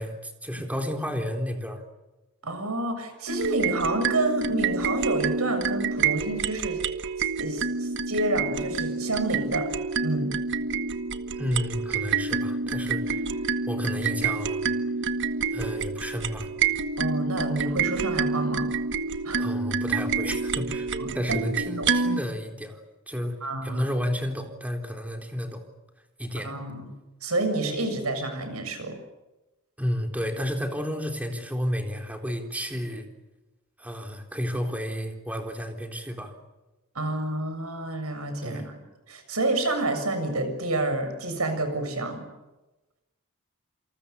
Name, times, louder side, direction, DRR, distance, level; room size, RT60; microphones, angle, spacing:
voice 1, 0.0-1.8 11.3-13.4 13.7-14.7 15.5-16.5 19.4-20.9 21.1-22.8 23.1-25.6 26.2-26.5 29.8-33.1 33.8-36.3 38.4-38.7, equal, 5° right, 3 dB, 3.9 m, -31 dB
voice 2, 2.4-6.8 7.4-9.7 10.0-10.3 17.0-18.7 19.2-19.5 21.0-21.4 21.8-21.9 23.4-23.9 26.4-26.9 27.2-29.0 36.9-38.8 39.1-42.3, right 2 dB, 85° right, 7 dB, 6.9 m, -29 dB
sound 1, 3.3-22.2, right 5 dB, 55° right, 1.4 m, -28 dB
28.0 x 26.5 x 7.1 m, 1.1 s
head